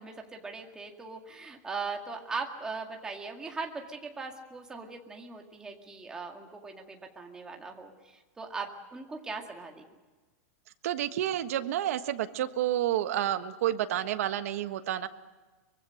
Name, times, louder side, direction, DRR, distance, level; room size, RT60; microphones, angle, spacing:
voice 1, 0.0-9.8, right 4 dB, 10° right, 2 dB, 2.0 m, -39 dB
voice 2, 10.8-15.1, right 12 dB, 65° right, 10 dB, 1.4 m, -30 dB
24.5 x 23.0 x 6.5 m, 1.3 s
supercardioid pair, 175°, 9 cm